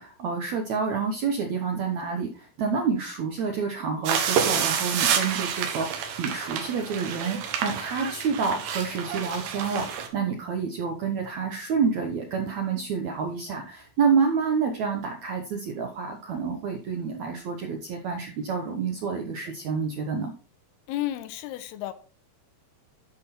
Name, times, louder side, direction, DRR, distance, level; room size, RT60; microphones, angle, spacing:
voice 1, 0.0-20.3, right 5 dB, 75° right, 1.7 m, -28 dB
sound 1, 4.1-10.1, right 7 dB, 90° right, 3.5 m, -28 dB
voice 2, 20.9-21.9, left 14 dB, 80° left, 2.7 m, -32 dB
11.5 x 5.9 x 4.2 m
omnidirectional pair, 4.7 m